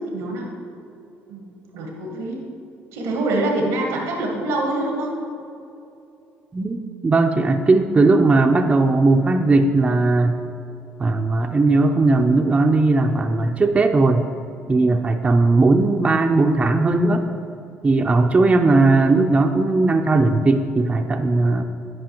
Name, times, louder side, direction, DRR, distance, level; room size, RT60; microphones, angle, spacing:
voice 1, 0.0-0.5 1.3-2.4 2.9-5.2 14.6-14.9, right 2 dB, 90° right, 0 dB, 1.0 m, -25 dB
voice 2, 7.0-10.4 11.0-14.3 14.7-17.3 17.8-21.6, right 3 dB, 25° right, 4 dB, 0.4 m, -17 dB
11.0 x 4.9 x 2.9 m, 2.8 s
supercardioid pair, 75°, 5 cm